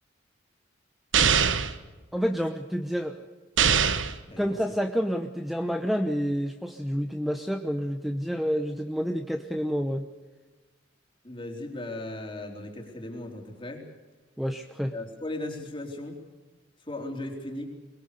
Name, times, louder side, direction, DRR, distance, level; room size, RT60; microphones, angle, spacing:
sound 1, 1.1-1.8 3.6-4.2, right 7 dB, 85° right, 1.3 m, -22 dB
voice 1, 2.1-3.3 4.4-10.1 14.4-14.9, equal, ahead, 5 dB, 0.9 m, -29 dB
voice 2, 11.2-13.8 14.9-16.2 16.9-17.7, left 1 dB, 25° left, 2 dB, 3.8 m, -37 dB
23.5 x 21.0 x 6.8 m, 1.2 s
head